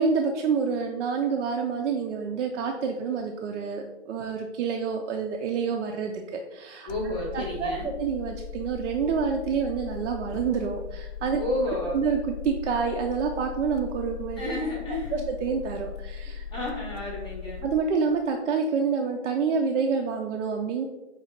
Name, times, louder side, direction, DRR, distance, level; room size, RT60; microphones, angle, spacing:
voice 1, 0.0-6.9 7.3-7.7 8.0-11.4 11.9-14.4 15.1-16.4 17.6-20.9, right 5 dB, 80° right, 2 dB, 0.6 m, -27 dB
sound 1, 6.9-17.8, left 7 dB, 85° left, 0.5 m, -39 dB
voice 2, 6.9-7.9 11.4-12.0 14.4-15.2 16.5-17.7, left 1 dB, 15° left, -2 dB, 0.6 m, -31 dB
5.2 x 2.4 x 4.2 m, 1.1 s
hypercardioid pair, 140°, 35 cm